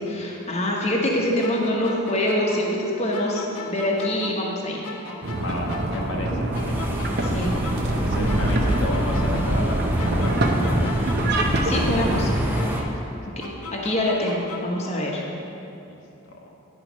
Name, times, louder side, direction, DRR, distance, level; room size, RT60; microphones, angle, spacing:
voice 1, 0.1-4.8 6.3-6.4 7.2-7.5 11.6-12.3 13.4-15.2, left 1 dB, 30° left, -2 dB, 0.9 m, -25 dB
sound 1, 1.4-4.6 4.8-8.0 8.3-11.4 11.7-14.8, left 2 dB, 90° left, 1.0 m, -38 dB
sound 2, 5.2-12.3, right 1 dB, 50° right, 0.6 m, -25 dB
voice 2, 5.4-6.7 8.0-10.9 13.1-13.2, left 1 dB, 60° left, -1 dB, 0.9 m, -32 dB
sound 3, 6.5-12.8, equal, 10° right, 0.6 m, -27 dB
10.0 x 4.5 x 6.1 m, 2.8 s
head